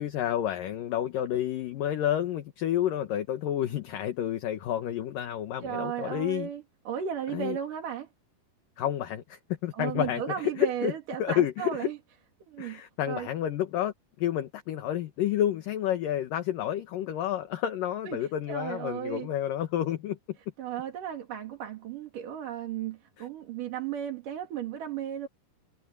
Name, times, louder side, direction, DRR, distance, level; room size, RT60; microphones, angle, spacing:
voice 1, 0.0-6.5 7.3-7.6 8.8-10.9 11.2-11.9 12.6-20.2 23.2-23.3, left 11 dB, 65° left, 2.7 m, -30 dB
voice 2, 5.6-8.1 9.7-12.0 12.5-12.8 13.1-13.3 18.1-19.3 20.6-25.3, right 9 dB, 55° right, 3.7 m, -35 dB
omnidirectional pair, 4.6 m